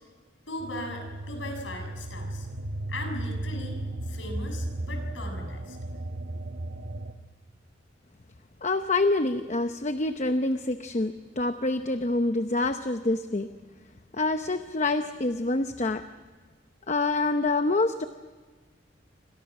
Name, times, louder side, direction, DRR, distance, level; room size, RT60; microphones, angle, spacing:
voice 1, 0.5-2.5 2.9-5.8, left 1 dB, 85° left, 4 dB, 6.8 m, -38 dB
sound 1, 0.6-7.1, right 1 dB, 70° right, 1.4 m, -35 dB
voice 2, 8.6-13.5 14.1-16.0 16.9-18.0, left 2 dB, 40° left, 8 dB, 0.8 m, -26 dB
28.0 x 25.0 x 6.1 m, 1.3 s
head